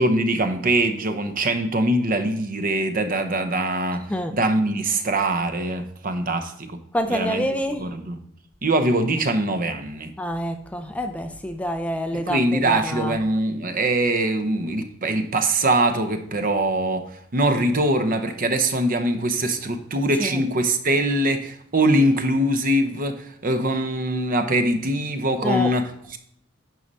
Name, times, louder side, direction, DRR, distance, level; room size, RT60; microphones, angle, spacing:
voice 1, 0.0-4.1 4.3-6.8 7.1-7.4 7.8-8.2 8.6-10.1 12.1-17.0 17.3-26.2, right 1 dB, 45° right, 0.8 m, -22 dB
voice 2, 6.9-7.9 10.2-13.2 20.2-20.4 25.4-25.7, equal, 5° left, 0.4 m, -27 dB
9.2 x 5.4 x 4.1 m
head